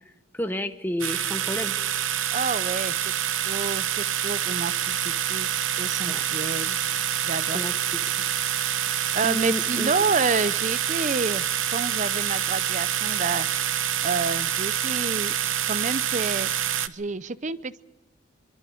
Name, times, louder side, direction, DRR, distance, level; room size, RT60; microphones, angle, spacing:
voice 1, 0.3-1.7 6.0-6.2 7.5-8.3 9.2-9.9, left 1 dB, 10° left, 7 dB, 1.1 m, -31 dB
sound 1, 1.0-16.9, right 10 dB, 80° right, 0.8 m, -26 dB
voice 2, 2.3-3.1 3.5-5.5 5.8-6.8 7.2-7.6 9.1-11.4 11.7-13.5 14.0-15.3 15.7-16.5 16.9-17.8, right 4 dB, 35° right, 16 dB, 0.6 m, -29 dB
23.5 x 23.5 x 5.0 m, 1.1 s
head